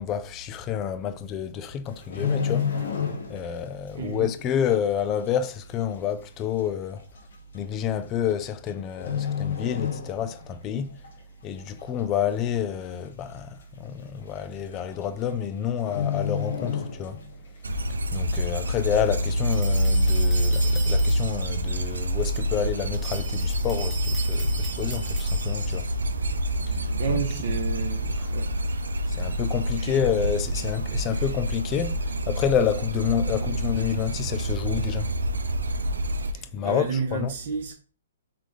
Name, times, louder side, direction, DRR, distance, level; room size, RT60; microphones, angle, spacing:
voice 1, 0.0-2.7 3.3-7.0 7.5-11.0 11.4-17.2 18.1-25.9 26.7-27.6 28.2-28.3 29.1-35.2 35.7-35.8 36.4-37.4, left 9 dB, 25° left, 0.4 m, -29 dB
sound 1, 1.9-3.6 3.9-4.2 4.7-4.8 5.7-5.8 6.0-6.1 7.0-7.2 8.3-8.7 9.0-10.5 10.9-11.1 11.6-12.1 12.5-12.6 12.8-12.9 13.3-13.4 14.4-14.5 14.7-15.0 15.3-15.4 15.8-17.5 17.8-17.9, left 7 dB, 70° left, 1.3 m, -29 dB
voice 2, 4.0-4.3 26.9-28.5 29.8-30.0 31.0-31.2 33.3-33.6 36.3-37.7, right 6 dB, 60° right, 0.9 m, -31 dB
sound 2, 17.6-36.3, equal, 90° right, 0.5 m, -26 dB
sound 3, 19.5-21.5 22.9-25.8, right 4 dB, 5° right, 1.1 m, -40 dB
3.7 x 3.7 x 3.2 m
hypercardioid pair, 135°, 0 cm